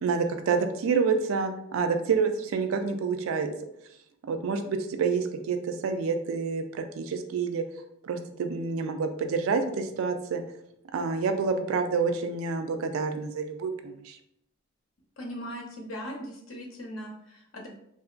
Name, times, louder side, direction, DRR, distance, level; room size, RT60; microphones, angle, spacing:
voice 1, 0.0-3.5 4.3-7.6 8.0-10.4 10.9-14.2, right 5 dB, 75° right, 7 dB, 0.3 m, -28 dB
voice 2, 15.2-17.7, equal, 70° left, 0 dB, 0.7 m, -39 dB
2.8 x 2.4 x 2.4 m, 0.77 s
head